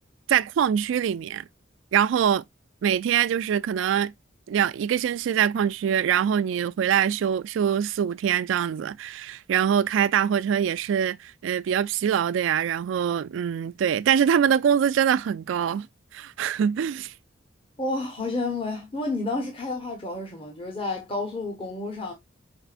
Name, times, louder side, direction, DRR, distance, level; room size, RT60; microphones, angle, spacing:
voice 1, 0.3-1.4 1.9-2.4 2.8-4.1 4.5-15.9 16.1-17.1, right 8 dB, 80° right, 0.3 m, -24 dB
voice 2, 17.8-22.1, left 2 dB, 30° left, 0.9 m, -30 dB
4.9 x 4.5 x 2.4 m
head